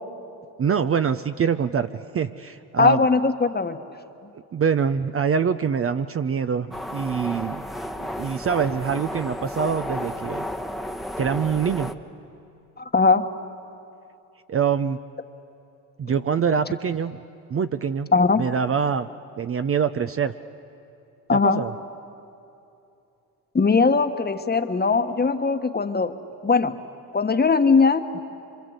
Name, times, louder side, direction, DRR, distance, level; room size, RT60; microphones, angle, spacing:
voice 1, 0.6-3.1 4.5-7.6 8.0-10.4 11.2-11.9 14.5-15.0 16.0-17.2 17.5-18.1 18.4-19.1 19.4-20.3 21.3-21.7, right 7 dB, 30° right, 10 dB, 0.7 m, -24 dB
voice 2, 2.8-3.8 12.8-13.2 18.1-18.4 21.3-21.6 23.5-26.1 26.4-26.7 27.1-28.2, left 4 dB, 20° left, 8 dB, 1.3 m, -20 dB
sound 1, 6.7-11.9, equal, ahead, 1.1 m, -32 dB
26.0 x 25.0 x 8.1 m, 2.7 s
supercardioid pair, 75°, 43 cm